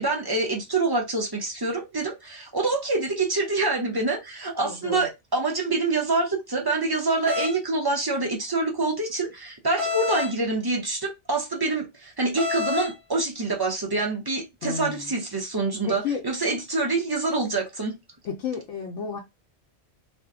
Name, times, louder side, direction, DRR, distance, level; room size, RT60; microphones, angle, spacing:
voice 1, 0.0-18.0, right 3 dB, 25° right, 0.5 m, -26 dB
voice 2, 4.6-5.1 14.6-15.1 15.9-16.2 18.2-19.2, left 6 dB, 85° left, 1.0 m, -31 dB
sound 1, 7.3-7.6 9.8-10.3 12.4-12.9, left 4 dB, 60° right, 1.1 m, -27 dB
2.7 x 2.1 x 3.5 m
omnidirectional pair, 1.2 m